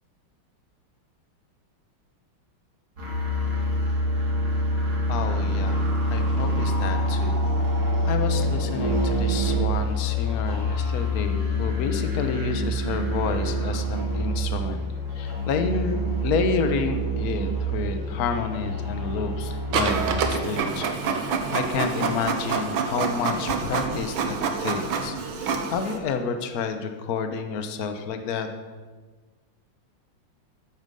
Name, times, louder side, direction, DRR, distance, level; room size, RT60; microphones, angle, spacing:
sound 1, 3.0-20.1, equal, 45° right, 3.7 m, -26 dB
voice 1, 5.1-7.4 8.0-14.8 15.1-28.5, left 5 dB, 50° left, 7 dB, 1.3 m, -30 dB
Printer, 19.7-26.0, right 5 dB, 75° right, 1.9 m, -27 dB
13.5 x 8.8 x 5.5 m, 1.4 s
omnidirectional pair, 2.3 m